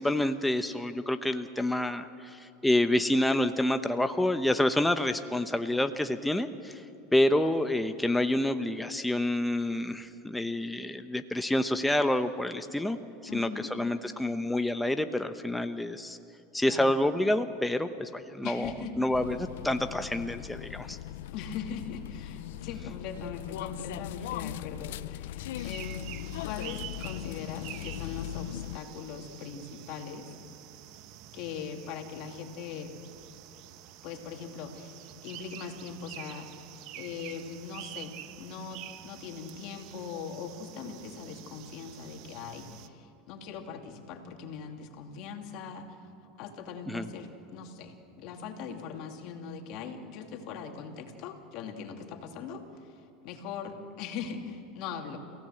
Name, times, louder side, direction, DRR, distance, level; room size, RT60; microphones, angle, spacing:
voice 1, 0.0-6.8 7.1-13.0 13.3-16.2 16.5-18.7 19.0-21.0 46.9-47.1, left 1 dB, 5° left, 8 dB, 0.9 m, -28 dB
voice 2, 7.3-7.7 13.3-13.7 16.7-17.0 18.4-19.1 21.1-30.3 31.3-32.9 34.0-46.1 46.4-55.2, left 6 dB, 60° left, 3 dB, 2.7 m, -41 dB
sound 1, 19.1-28.8, left 14 dB, 80° left, 0.5 m, -39 dB
sound 2, 25.6-42.9, right 13 dB, 55° right, 1.0 m, -48 dB
29.0 x 16.5 x 7.8 m, 2.6 s
supercardioid pair, 115°, 0 cm